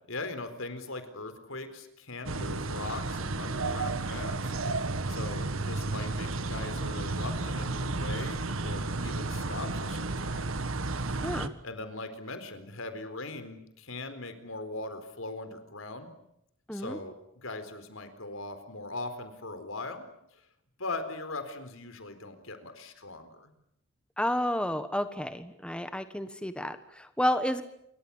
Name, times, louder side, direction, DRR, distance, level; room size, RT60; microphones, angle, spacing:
voice 1, 0.1-10.5 11.0-11.3 11.6-16.1 16.7-20.4 20.8-23.5, left 2 dB, 80° left, 10 dB, 4.3 m, -40 dB
sound 1, 2.3-11.5, right 3 dB, 85° right, 1.7 m, -32 dB
voice 2, 11.1-11.5 16.7-17.0 24.2-27.6, left 1 dB, 5° left, 10 dB, 1.3 m, -31 dB
28.5 x 24.0 x 7.3 m, 0.78 s
head